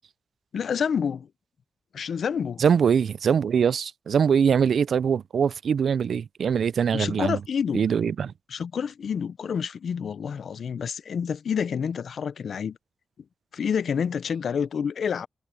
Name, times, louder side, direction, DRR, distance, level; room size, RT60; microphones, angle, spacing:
voice 1, 0.5-1.3 1.9-2.6 6.9-7.8 8.5-12.8 13.5-15.3, left 7 dB, 60° left, 0.5 m, -28 dB
voice 2, 2.6-7.4 7.7-8.3, right 7 dB, 65° right, 0.3 m, -22 dB
wide cardioid pair, 120°, 0 cm